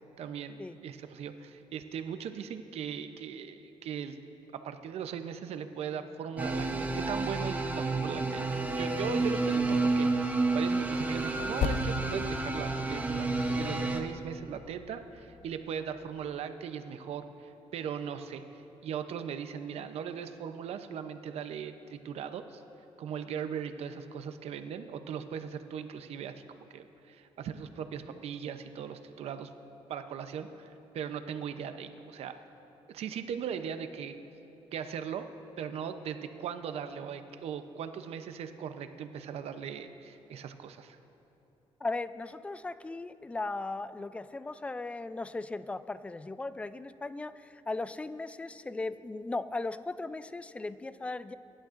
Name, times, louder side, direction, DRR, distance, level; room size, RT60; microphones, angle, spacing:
voice 1, 0.2-4.2 4.5-8.4 8.8-22.6 23.0-29.5 29.9-32.4 32.9-34.2 34.7-35.3 35.6-41.0, right 7 dB, 70° right, 9 dB, 0.7 m, -39 dB
sound 1, 6.4-14.0, right 3 dB, 15° right, 0.8 m, -30 dB
Percussion, 11.6-16.4, left 6 dB, 65° left, 0.6 m, -39 dB
voice 2, 41.8-51.3, left 3 dB, 10° left, 14 dB, 0.3 m, -37 dB
22.5 x 11.0 x 2.5 m, 3.0 s
cardioid pair, 120°, 11 cm